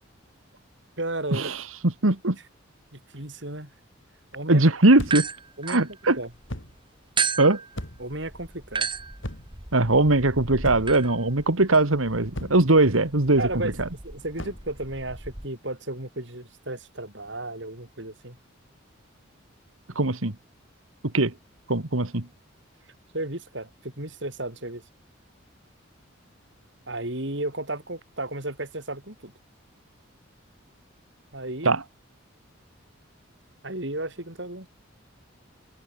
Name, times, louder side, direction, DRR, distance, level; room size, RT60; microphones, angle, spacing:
voice 1, 1.0-1.5 2.9-3.7 4.3-4.6 5.6-5.8 6.2-6.3 8.0-8.9 13.4-18.4 23.1-24.8 26.9-29.3 31.3-31.8 33.6-34.7, right 2 dB, 60° right, 4.8 m, -34 dB
voice 2, 2.0-2.4 4.5-5.3 5.7-6.2 7.4-7.6 9.7-13.4 20.0-20.3 21.1-21.3 21.7-22.3 31.6-31.8, right 2 dB, 85° right, 2.1 m, -20 dB
sound 1, 5.0-5.4 6.5-6.8 7.7-8.2 9.2-9.6 10.6-11.1 12.3-12.7 14.3-14.7, left 1 dB, 65° left, 5.9 m, -36 dB
sound 2, 5.1-6.5 7.2-15.5, right 5 dB, 25° right, 4.0 m, -34 dB
head